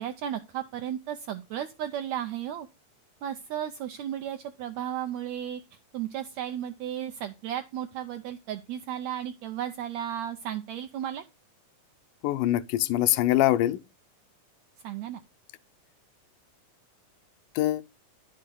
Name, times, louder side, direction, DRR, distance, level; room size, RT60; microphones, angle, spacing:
voice 1, 0.0-2.7 3.2-5.6 5.9-11.2 14.8-15.2, right 10 dB, 80° right, 1.6 m, -34 dB
voice 2, 12.2-13.8 17.6-17.8, left 14 dB, 80° left, 2.2 m, -23 dB
10.5 x 6.4 x 3.9 m
omnidirectional pair, 3.8 m